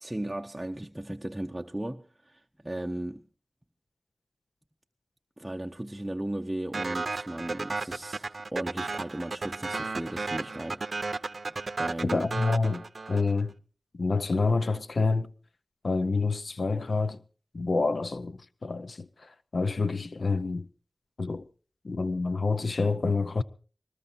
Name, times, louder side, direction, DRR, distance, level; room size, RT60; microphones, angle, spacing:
voice 1, 0.0-3.2 5.4-11.3 11.8-12.3, right 1 dB, 15° right, 0.7 m, -36 dB
sound 1, 6.7-13.4, right 3 dB, 70° right, 0.6 m, -34 dB
voice 2, 12.1-13.5 13.9-15.3 15.8-17.2 17.5-20.7 21.2-21.5 21.8-23.4, left 3 dB, 75° left, 0.6 m, -28 dB
20.5 x 19.5 x 2.6 m
wide cardioid pair, 70°, 0 cm